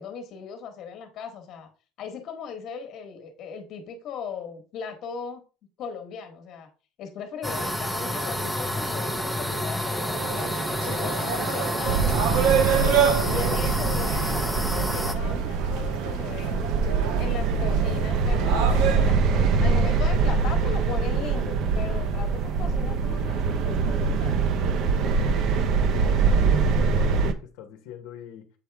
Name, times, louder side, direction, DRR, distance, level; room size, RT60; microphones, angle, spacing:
voice 1, 0.0-1.7 2.0-5.4 5.8-6.7 7.0-10.5 10.8-12.3 12.8-16.6 17.2-24.4, left 6 dB, 40° left, 1.3 m, -38 dB
sound 1, 7.4-15.1, left 1 dB, ahead, 0.6 m, -29 dB
sound 2, 10.1-19.1, right 7 dB, 70° right, 1.4 m, -28 dB
sound 3, 11.8-27.3, right 5 dB, 45° right, 0.7 m, -24 dB
voice 2, 16.8-17.4 22.0-22.4 24.7-25.5 25.9-28.5, left 9 dB, 70° left, 1.0 m, -44 dB
7.5 x 4.5 x 3.4 m
cardioid pair, 165°, 0 cm